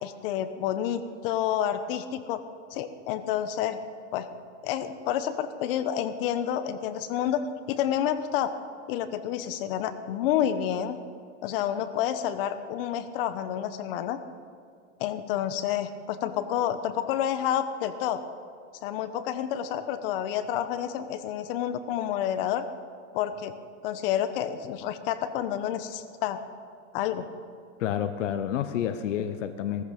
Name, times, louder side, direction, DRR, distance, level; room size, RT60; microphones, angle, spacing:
voice 1, 0.0-2.4 2.7-3.8 4.1-4.3 4.6-8.5 8.9-11.0 11.4-14.2 15.0-18.2 18.8-22.7 23.1-23.5 23.8-26.4 26.9-27.3, left 10 dB, 50° left, 11 dB, 1.1 m, -29 dB
voice 2, 27.8-29.8, left 9 dB, 85° left, 10 dB, 1.0 m, -29 dB
16.0 x 14.5 x 5.3 m, 2.3 s
supercardioid pair, 155°, 36 cm